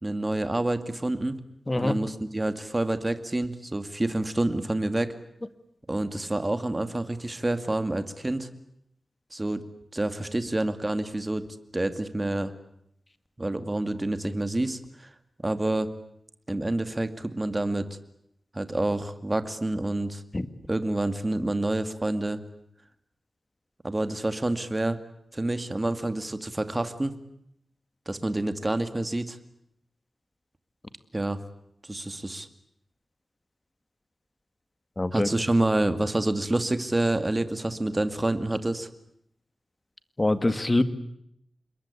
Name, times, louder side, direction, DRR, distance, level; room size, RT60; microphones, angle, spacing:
voice 1, 0.0-1.4 1.8-5.1 5.9-8.5 9.3-9.6 9.9-11.4 11.7-12.5 13.4-15.1 15.4-15.9 16.5-17.9 18.5-20.2 20.7-22.4 23.8-25.0 25.3-27.2 28.1-29.4 31.1-31.4 31.8-32.5 35.1-38.9, right 1 dB, 25° right, 10 dB, 2.3 m, -28 dB
voice 2, 1.7-2.0 20.3-20.5 35.0-35.3 40.2-40.8, left 2 dB, 25° left, 12 dB, 1.9 m, -24 dB
27.0 x 22.0 x 8.4 m, 0.75 s
wide cardioid pair, 90°, 0 cm